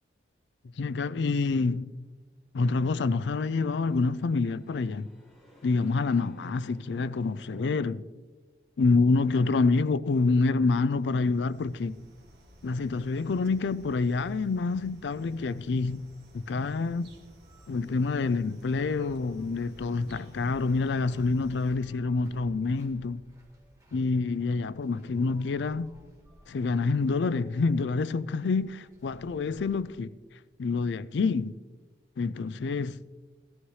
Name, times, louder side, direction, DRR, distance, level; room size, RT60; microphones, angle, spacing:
voice 1, 0.8-1.9 2.5-5.1 5.6-8.1 8.8-12.0 12.6-16.0 16.3-17.1 17.7-23.2 23.9-25.9 26.5-30.1 30.6-31.6 32.2-33.0, left 3 dB, 85° left, 0.4 m, -27 dB
sound 1, 3.0-8.3, left 1 dB, ahead, 2.0 m, -58 dB
sound 2, 11.0-21.7, equal, 70° right, 1.6 m, -53 dB
sound 3, 17.2-29.8, equal, 20° right, 1.7 m, -60 dB
15.5 x 14.0 x 3.2 m
head